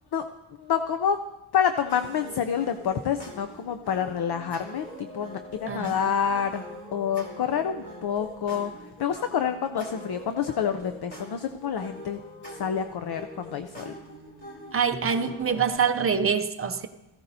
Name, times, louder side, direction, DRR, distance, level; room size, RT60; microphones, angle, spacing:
voice 1, 0.5-1.2 1.5-6.7 6.9-8.7 9.0-12.2 12.5-13.9, left 8 dB, 55° left, 8 dB, 0.5 m, -28 dB
sound 1, 1.9-15.8, left 1 dB, 20° left, 3.0 m, -43 dB
voice 2, 5.7-6.1 14.7-16.9, right 6 dB, 30° right, 7 dB, 0.5 m, -25 dB
17.5 x 15.0 x 2.7 m, 1.0 s
wide cardioid pair, 155°, 49 cm